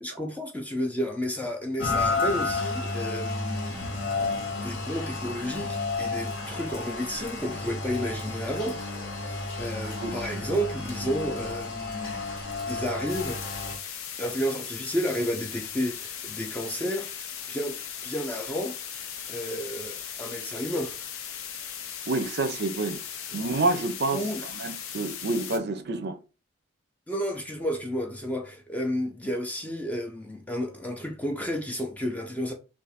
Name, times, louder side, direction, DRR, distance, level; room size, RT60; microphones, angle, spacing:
voice 1, 0.0-4.0 4.6-8.8 9.2-12.3 12.7-13.7 14.2-17.8 18.0-18.7 19.3-20.9 24.1-24.4 27.1-32.5, equal, 5° left, 0.4 m, -32 dB
Rain, 1.8-13.8, left 3 dB, 60° left, 0.9 m, -31 dB
voice 2, 10.0-10.6 22.1-23.0 23.3-24.2 24.6-26.2, right 2 dB, 50° right, 0.5 m, -28 dB
sound 1, 13.1-25.6, left 8 dB, 75° left, 0.5 m, -38 dB
2.5 x 2.4 x 4.0 m
head